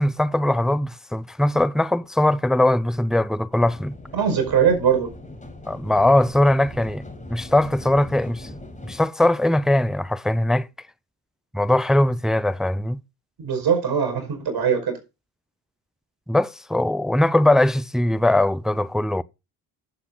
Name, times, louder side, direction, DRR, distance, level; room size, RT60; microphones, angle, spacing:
voice 1, 0.0-3.9 5.7-7.0 7.3-8.5 8.8-10.7 11.5-13.0 16.3-19.2, left 1 dB, ahead, 0.5 m, -20 dB
sound 1, 3.5-9.0, left 1 dB, 15° left, 5.0 m, -40 dB
voice 2, 4.1-5.1 13.4-14.9, right 7 dB, 55° right, 5.3 m, -21 dB
10.5 x 7.9 x 3.9 m
supercardioid pair, 60°, 45 cm